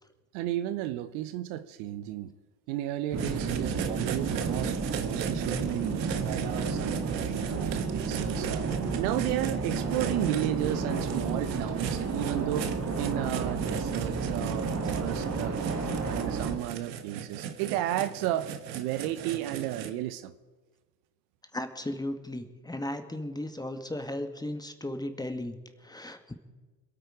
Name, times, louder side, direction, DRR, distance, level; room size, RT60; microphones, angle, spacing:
voice 1, 0.3-2.3 2.7-15.6 15.8-20.3, right 13 dB, 65° right, 12 dB, 1.0 m, -33 dB
sound 1, 3.1-16.6, right 4 dB, 30° right, 2.2 m, -31 dB
sound 2, 3.2-19.9, right 8 dB, 85° right, 1.2 m, -39 dB
voice 2, 21.5-26.3, left 1 dB, 10° left, 7 dB, 1.8 m, -36 dB
26.5 x 8.9 x 5.0 m, 1.3 s
hypercardioid pair, 70°, 50 cm